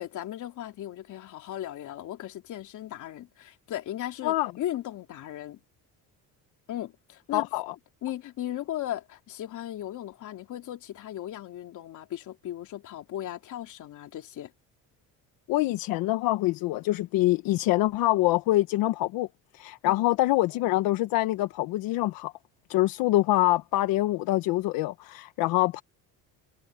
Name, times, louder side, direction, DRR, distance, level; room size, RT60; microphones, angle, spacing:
voice 1, 0.0-5.6 6.7-7.5 8.0-14.5 19.8-20.1, left 12 dB, 60° left, 3.4 m, -37 dB
voice 2, 7.3-7.7 15.5-19.3 19.5-22.3 22.7-25.8, left 17 dB, 85° left, 1.1 m, -25 dB
cardioid pair, 140°, 34 cm